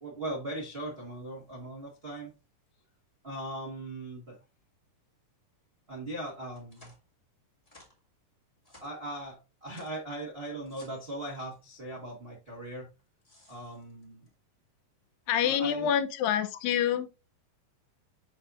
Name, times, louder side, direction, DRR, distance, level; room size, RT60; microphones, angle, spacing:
voice 1, 0.0-2.3 3.2-4.4 5.9-6.9 8.8-12.9 13.5-14.3 15.4-15.9, right 1 dB, 85° right, 0.5 m, -39 dB
sound 1, 6.3-7.1 7.6-8.1 8.6-8.9 9.7-10.1 10.7-11.8 13.0-14.3, left 1 dB, 45° left, 0.4 m, -58 dB
voice 2, 15.3-17.1, left 9 dB, 85° left, 2.4 m, -27 dB
7.5 x 5.4 x 2.5 m
omnidirectional pair, 4.0 m